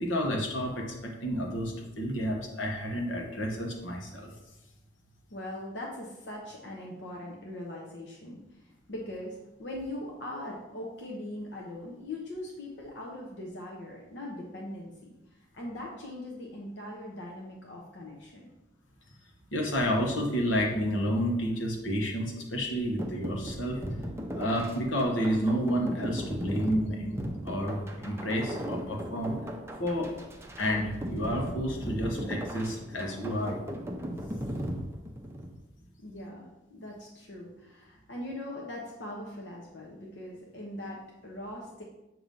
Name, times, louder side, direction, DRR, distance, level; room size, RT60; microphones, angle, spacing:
voice 1, 0.0-4.3 19.5-23.8 24.3-27.2 27.4-29.4 29.8-30.1 30.6-33.6, equal, 85° left, 1 dB, 1.2 m, -30 dB
voice 2, 5.3-18.5 36.0-41.8, left 1 dB, 60° left, -2 dB, 0.9 m, -41 dB
sound 1, 23.0-35.5, equal, 15° right, 0.6 m, -37 dB
7.5 x 2.9 x 5.3 m, 0.98 s
head